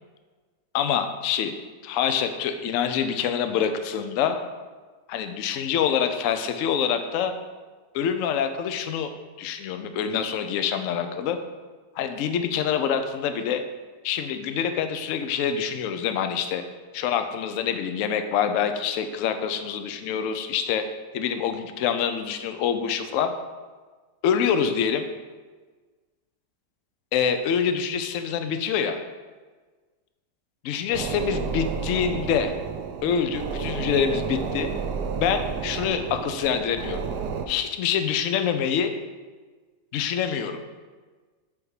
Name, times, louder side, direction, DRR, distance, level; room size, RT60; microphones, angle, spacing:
voice 1, 0.7-1.5 1.8-4.4 5.1-7.3 7.9-9.1 9.4-11.4 12.0-13.6 14.0-16.6 16.9-20.8 21.1-23.3 24.2-25.0 27.1-29.0 30.6-32.5 33.0-34.7 35.1-37.0 37.5-38.9 39.9-40.6, left 7 dB, 70° left, 8 dB, 0.7 m, -26 dB
sound 1, 30.9-37.5, right 6 dB, 75° right, 1.1 m, -31 dB
7.8 x 3.6 x 4.7 m, 1.4 s
omnidirectional pair, 1.8 m